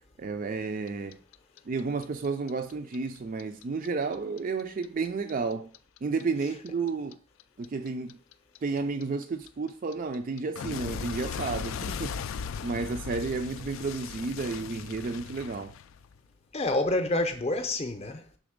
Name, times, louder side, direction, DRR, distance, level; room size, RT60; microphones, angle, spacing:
voice 1, 0.2-1.2 1.7-5.7 6.0-7.2 7.6-8.2 8.6-12.3 12.6-15.7, right 4 dB, 40° right, 0.4 m, -32 dB
Clock, 0.9-3.9 4.1-7.1 7.4-16.3, left 6 dB, 70° left, 0.3 m, -38 dB
voice 2, 16.5-18.4, left 2 dB, 30° left, 0.6 m, -28 dB
5.0 x 3.9 x 5.0 m
head